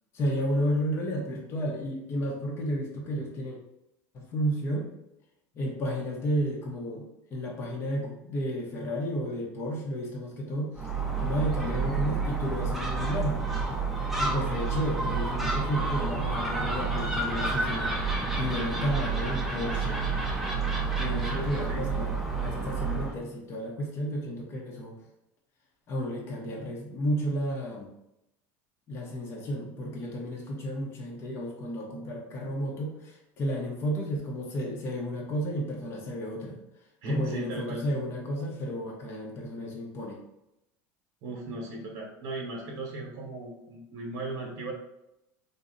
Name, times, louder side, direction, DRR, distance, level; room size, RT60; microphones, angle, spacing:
voice 1, 0.1-3.6 4.1-4.9 5.5-7.0 7.3-10.8 11.2-13.4 14.2-17.9 18.4-20.0 20.9-25.0 25.9-27.9 28.9-36.6 37.1-40.2, equal, 35° left, -2 dB, 0.7 m, -32 dB
Gull seagull, 10.7-23.2, right 4 dB, ahead, 0.5 m, -29 dB
voice 2, 21.3-21.8 37.0-37.8 41.2-44.7, right 1 dB, 60° right, -3 dB, 0.9 m, -36 dB
3.9 x 2.0 x 3.7 m, 0.86 s
cardioid pair, 150°, 8 cm